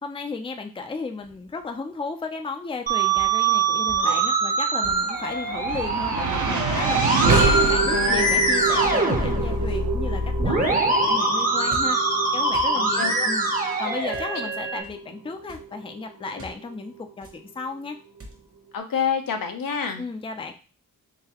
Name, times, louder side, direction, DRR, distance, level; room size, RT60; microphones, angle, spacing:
voice 1, 0.0-7.0 7.4-12.0 12.3-13.5 13.8-18.0 20.0-20.5, left 4 dB, 15° left, 5 dB, 0.4 m, -34 dB
sound 1, 1.2-1.6 3.1-3.4 3.8-4.1 4.8-5.2 5.7-6.0 6.7-7.0 7.6-7.9 8.8-9.2 9.6-9.9 10.5-10.9 11.7-12.1 12.5-12.8 14.0-14.4 14.8-15.0 15.3-15.7 16.4-16.6 17.2-17.5 18.2-18.5, right 1 dB, 40° right, 1.2 m, -42 dB
Musical instrument, 2.9-14.8, right 2 dB, 25° right, 0.8 m, -23 dB
sound 2, 4.7-17.1, right 4 dB, 60° right, 0.8 m, -28 dB
voice 2, 7.9-8.3 12.7-13.3 13.8-13.9 14.3-14.5 16.3-16.4 18.7-20.0, left 7 dB, 75° left, 5 dB, 0.8 m, -28 dB
3.9 x 3.6 x 2.9 m, 0.34 s
wide cardioid pair, 135°, 34 cm